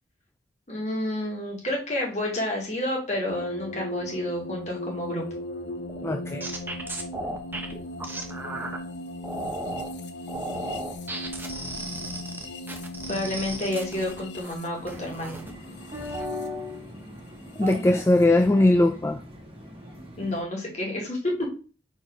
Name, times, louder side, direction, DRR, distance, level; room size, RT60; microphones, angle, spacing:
voice 1, 0.7-5.2 13.1-15.4 20.2-21.5, left 1 dB, 40° left, -2 dB, 2.6 m, -30 dB
sound 1, 3.3-18.3, left 1 dB, 85° left, 0.9 m, -38 dB
sound 2, 5.9-8.8 9.2-9.9 10.3-14.5 14.9-15.5 15.9-16.3, right 2 dB, 10° right, 0.9 m, -35 dB
voice 2, 6.0-6.5 17.6-19.2, left 2 dB, 15° left, 5 dB, 0.4 m, -20 dB
sound 3, 14.7-20.4, left 1 dB, 30° right, 1.7 m, -39 dB
4.6 x 4.5 x 5.2 m, 0.36 s
head